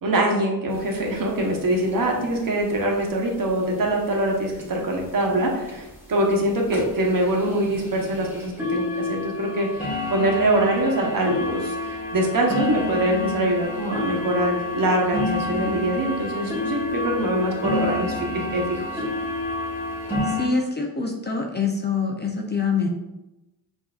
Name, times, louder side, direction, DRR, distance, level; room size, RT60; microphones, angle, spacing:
voice 1, 0.0-18.8, right 1 dB, 50° right, 0 dB, 1.0 m, -24 dB
sound 1, 0.7-0.8 1.1-1.2 1.4-1.6 1.9-2.3 3.0-3.1 3.6-3.7 4.1-4.2 4.6-4.7 5.2-5.3 5.7-5.9 6.3-6.4 6.7-20.5, left 2 dB, 5° right, 1.4 m, -29 dB
voice 2, 20.2-22.9, left 5 dB, 25° left, 0 dB, 0.5 m, -25 dB
5.4 x 2.7 x 2.4 m, 0.98 s
cardioid pair, 85°, 43 cm